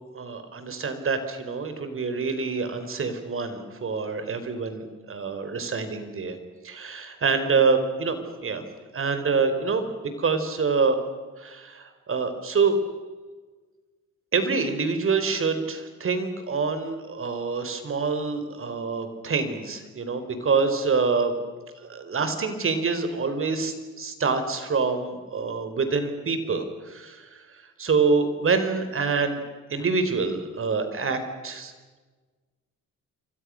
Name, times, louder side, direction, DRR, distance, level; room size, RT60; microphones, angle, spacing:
voice 1, 0.1-6.4 6.6-8.6 8.9-9.9 10.2-11.0 11.4-12.8 14.3-21.3 21.9-27.4 27.8-29.4 29.7-31.7, right 4 dB, 45° right, 9 dB, 4.6 m, -26 dB
28.0 x 25.0 x 6.5 m, 1.3 s
cardioid pair, 90°, 30 cm